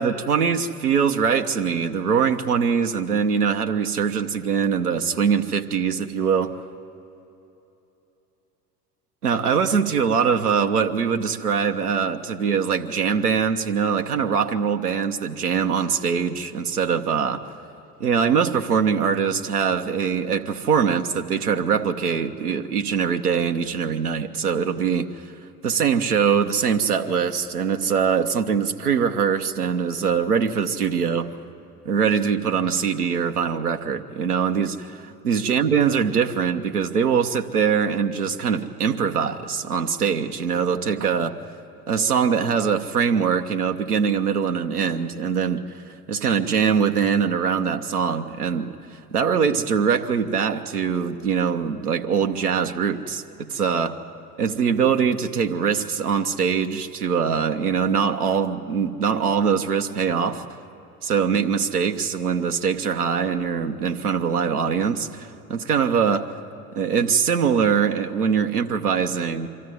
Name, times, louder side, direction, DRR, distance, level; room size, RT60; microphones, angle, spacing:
voice 1, 0.0-6.5 9.2-17.4 18.0-25.1 25.6-31.3 31.8-41.4 41.9-48.8 49.1-53.9 54.4-60.4 61.0-66.3 66.7-69.5, right 6 dB, 85° right, 6 dB, 1.0 m, -22 dB
24.5 x 13.0 x 9.3 m, 2.9 s
figure-of-eight pair, 65°, 44 cm